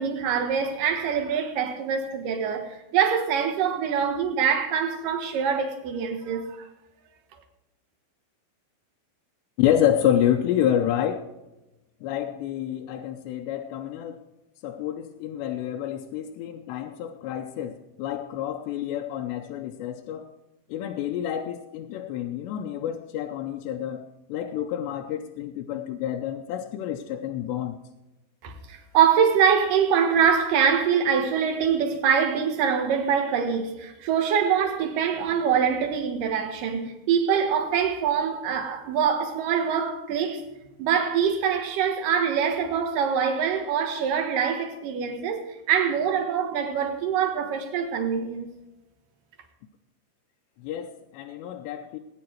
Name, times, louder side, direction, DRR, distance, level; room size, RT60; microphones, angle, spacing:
voice 1, 0.0-6.7 28.4-40.5 40.8-48.5, right 7 dB, 60° right, 2.7 m, -24 dB
voice 2, 9.6-11.3 12.0-14.2 14.6-20.3 20.7-27.8 50.6-52.0, left 10 dB, 85° left, 2.8 m, -28 dB
19.0 x 9.6 x 4.6 m
omnidirectional pair, 5.3 m